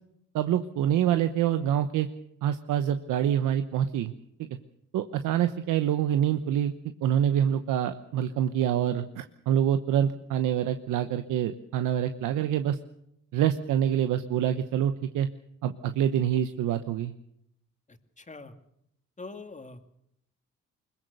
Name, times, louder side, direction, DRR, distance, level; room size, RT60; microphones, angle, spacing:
voice 1, 0.3-2.1 2.4-4.1 4.9-6.7 7.0-12.8 13.3-15.3 15.6-17.1, right 10 dB, 85° right, 9 dB, 1.0 m, -26 dB
voice 2, 17.9-18.5 19.2-19.9, left 3 dB, 25° left, 7 dB, 2.5 m, -44 dB
22.0 x 20.5 x 6.8 m, 0.76 s
cardioid pair, 70°, 31 cm